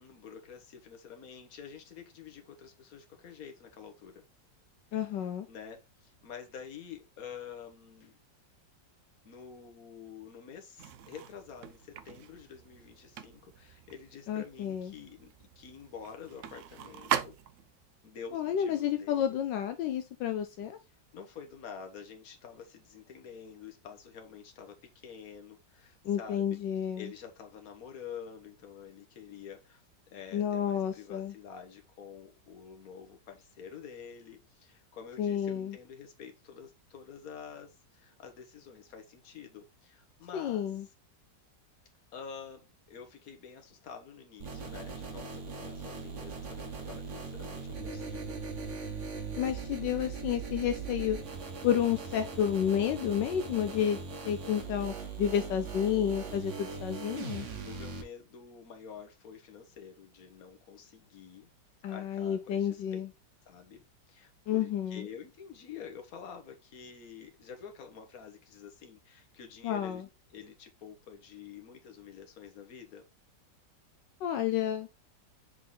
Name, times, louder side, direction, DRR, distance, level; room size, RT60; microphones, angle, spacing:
voice 1, 0.0-4.2 5.2-8.2 9.2-17.3 18.0-19.4 21.1-26.6 27.0-40.7 42.1-48.4 48.9-49.2 57.7-61.5 61.9-63.0 63.4-70.0 70.3-73.1, left 7 dB, 55° left, 1.6 m, -48 dB
voice 2, 4.9-5.5 14.3-14.9 18.3-20.8 26.0-27.1 30.3-31.3 35.2-35.8 40.3-40.9 49.4-51.2 51.6-57.5 61.8-63.1 64.5-65.1 69.6-70.0 74.2-74.9, left 9 dB, 80° left, 1.3 m, -30 dB
sound 1, 10.8-17.9, right 9 dB, 85° right, 0.6 m, -40 dB
sound 2, 44.4-58.0, right 5 dB, 45° right, 1.3 m, -40 dB
6.4 x 3.9 x 3.8 m
omnidirectional pair, 1.9 m